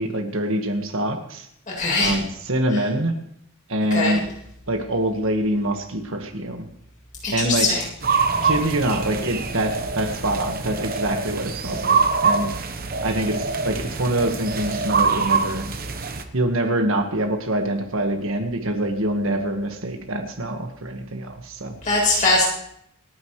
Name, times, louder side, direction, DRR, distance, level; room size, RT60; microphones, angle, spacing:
voice 1, 0.0-1.5 2.0-3.1 3.7-4.3 4.7-6.7 7.3-7.7 8.4-12.5 13.0-15.7 16.3-21.8, right 1 dB, 60° right, 4 dB, 1.6 m, -25 dB
voice 2, 1.8-2.1 3.9-4.2 7.2-7.8 21.8-22.4, left 2 dB, 35° left, -4 dB, 7.7 m, -20 dB
sound 1, 8.0-16.2, right 5 dB, 40° right, 1.0 m, -24 dB
28.0 x 9.5 x 3.2 m, 0.72 s
head